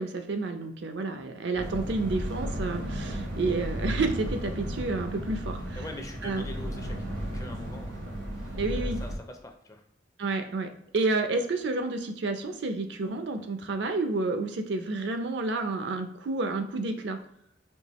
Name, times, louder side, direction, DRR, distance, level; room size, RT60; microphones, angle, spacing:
voice 1, 0.0-5.8 6.2-6.4 8.6-9.0 10.2-17.2, right 3 dB, 65° right, 7 dB, 0.5 m, -30 dB
sound 1, 1.5-9.2, equal, 80° right, 1.0 m, -34 dB
voice 2, 5.7-9.8, left 1 dB, 20° left, 4 dB, 0.4 m, -44 dB
4.5 x 2.9 x 3.0 m, 0.74 s
head